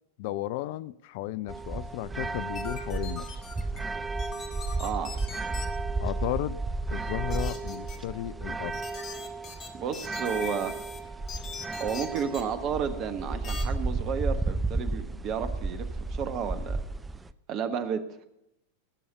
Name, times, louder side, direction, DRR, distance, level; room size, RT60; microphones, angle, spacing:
voice 1, 0.2-3.4 6.0-6.6 6.9-8.8, left 14 dB, 50° left, 17 dB, 0.4 m, -34 dB
sound 1, 1.5-17.3, right 3 dB, 10° right, 0.5 m, -33 dB
sound 2, 2.5-3.8 4.2-5.7 7.3-8.0 8.7-11.0 11.3-12.4 13.4-13.6, left 5 dB, 30° left, 2.0 m, -41 dB
voice 2, 4.8-5.2 9.7-10.8 11.7-16.8 17.5-18.0, right 7 dB, 35° right, 10 dB, 1.3 m, -32 dB
18.5 x 7.0 x 6.8 m, 0.83 s
figure-of-eight pair, 90°, 0 cm